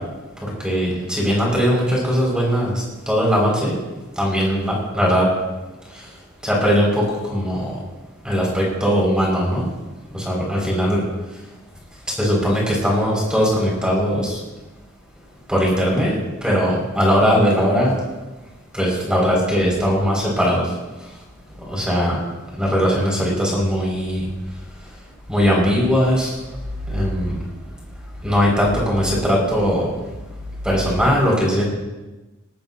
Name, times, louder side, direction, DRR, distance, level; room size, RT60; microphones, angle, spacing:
voice 1, 1.2-2.7 3.1-3.7 4.2-5.2 6.6-6.9 7.3-7.6 8.3-9.6 10.3-10.4 10.7-11.0 12.2-14.2 15.5-16.2 16.4-17.9 18.8-20.6 21.9-22.1 22.6-24.2 25.3-26.2 26.9-27.1 28.2-29.9 30.7-31.7, equal, 5° right, -3 dB, 6.3 m, -19 dB
20.0 x 18.5 x 3.0 m, 1.1 s
head